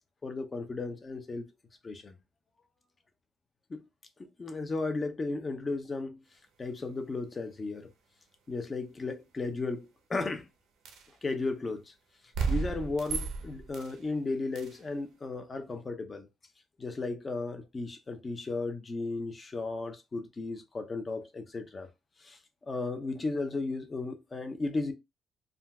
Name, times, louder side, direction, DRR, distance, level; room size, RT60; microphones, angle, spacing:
voice 1, 0.2-1.5 1.8-2.1 3.7-3.8 4.2-6.2 6.6-7.9 8.5-10.5 11.2-11.8 12.5-16.3 16.8-21.9 22.2-22.4 22.7-24.9, left 3 dB, 30° left, 0.7 m, -35 dB
sound 1, 10.8-11.1 12.3-14.0 14.5-14.8, right 5 dB, 85° right, 0.7 m, -33 dB
3.7 x 2.2 x 2.3 m
cardioid pair, 90°, 0 cm